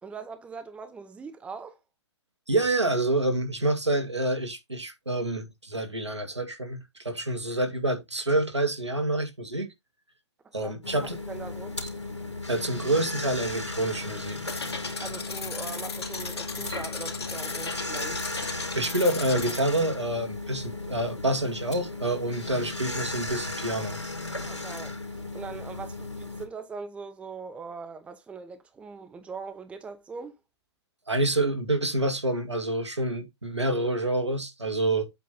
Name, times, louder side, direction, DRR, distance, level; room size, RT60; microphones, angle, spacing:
voice 1, 0.0-1.8 10.4-11.8 15.0-18.2 24.4-30.4, right 5 dB, 10° right, 0.8 m, -41 dB
voice 2, 2.5-9.7 10.5-11.2 12.5-14.4 18.8-24.0 31.1-35.1, right 1 dB, 80° right, 2.0 m, -27 dB
sound 1, 10.8-26.5, left 2 dB, 85° left, 2.6 m, -36 dB
sound 2, 14.5-19.6, left 4 dB, 65° left, 2.5 m, -36 dB
7.9 x 3.1 x 5.3 m
figure-of-eight pair, 120°, 14 cm